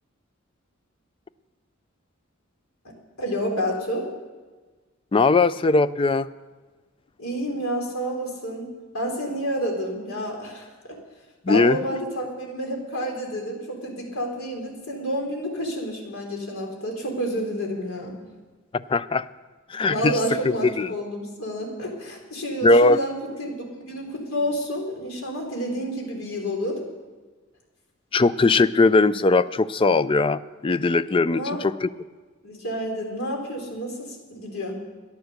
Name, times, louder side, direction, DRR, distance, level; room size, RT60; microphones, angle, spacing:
voice 1, 3.2-4.1 7.2-10.7 11.5-18.2 19.9-23.1 23.4-26.8 31.3-31.6 32.4-34.7, equal, 85° left, 0 dB, 3.6 m, -29 dB
voice 2, 5.1-6.3 11.5-11.8 18.7-19.3 19.7-20.1 20.4-20.9 22.6-23.0 28.1-31.9, left 3 dB, 25° left, 15 dB, 0.4 m, -20 dB
14.5 x 10.5 x 6.6 m, 1.3 s
head